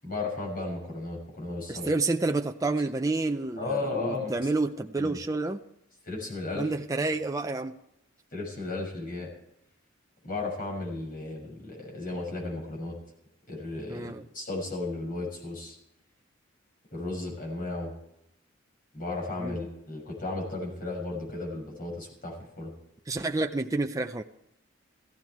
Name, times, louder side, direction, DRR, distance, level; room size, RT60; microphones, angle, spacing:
voice 1, 0.0-1.9 3.6-4.3 4.9-5.2 6.0-6.7 8.3-9.3 10.2-13.0 13.5-15.7 16.9-17.9 18.9-22.7, left 2 dB, 45° left, -2 dB, 6.7 m, -34 dB
voice 2, 1.7-5.6 6.5-7.8 13.9-14.2 19.4-19.6 23.1-24.2, right 3 dB, 15° right, 5 dB, 0.5 m, -29 dB
16.5 x 14.5 x 4.7 m, 0.83 s
head